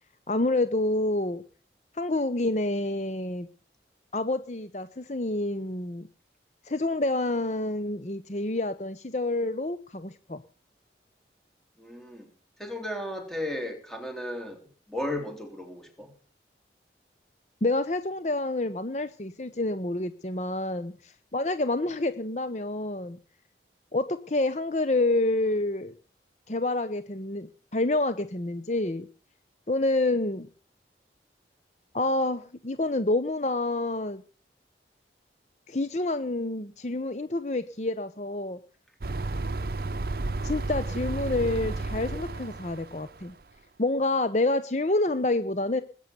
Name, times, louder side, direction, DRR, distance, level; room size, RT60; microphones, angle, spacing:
voice 1, 0.3-1.4 1.9-3.5 4.1-6.1 6.6-10.4 17.6-23.2 23.9-25.9 26.5-29.1 29.7-30.5 31.9-34.2 35.7-38.6 40.4-43.3 43.8-45.8, left 2 dB, 40° left, 12 dB, 0.8 m, -28 dB
voice 2, 11.8-12.3 12.6-14.6 14.9-16.1, left 1 dB, ahead, 4 dB, 3.5 m, -34 dB
sound 1, 39.0-43.3, right 2 dB, 55° right, 0.7 m, -32 dB
20.0 x 9.2 x 6.9 m, 0.40 s
head